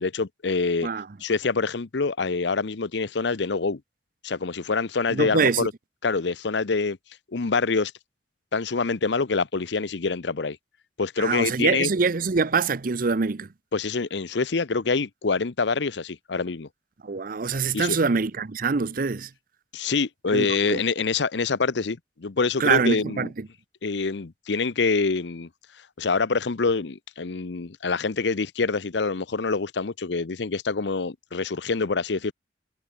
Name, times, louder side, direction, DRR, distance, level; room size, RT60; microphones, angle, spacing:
voice 1, 0.0-0.9 1.2-3.8 4.2-5.7 6.0-7.0 7.3-7.9 8.5-10.6 11.0-11.9 13.7-16.7 17.7-18.0 19.7-23.3 23.8-25.5 26.0-32.3, left 4 dB, 70° left, 0.8 m, -26 dB
voice 2, 5.1-5.7 11.2-13.5 17.0-19.3 20.3-20.8 22.6-23.5, right 4 dB, 50° right, 0.7 m, -24 dB
head